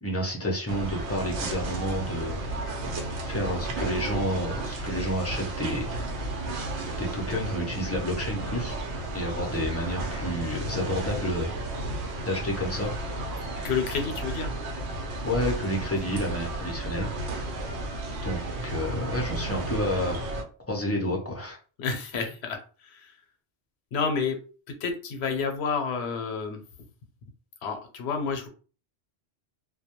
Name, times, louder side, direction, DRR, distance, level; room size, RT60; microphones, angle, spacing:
voice 1, 0.0-2.4 3.2-6.0 7.0-8.8 9.1-11.5 12.2-12.9 13.6-13.7 15.2-17.1 18.2-20.2 20.7-21.6, equal, 20° left, -2 dB, 0.4 m, -30 dB
sound 1, 0.7-20.4, right 2 dB, 90° right, 0.9 m, -33 dB
voice 2, 13.6-14.5 21.8-23.2 23.9-24.4 24.8-26.6 27.6-28.5, left 5 dB, 80° left, 5 dB, 0.9 m, -30 dB
2.2 x 2.1 x 2.8 m, 0.38 s
omnidirectional pair, 1.1 m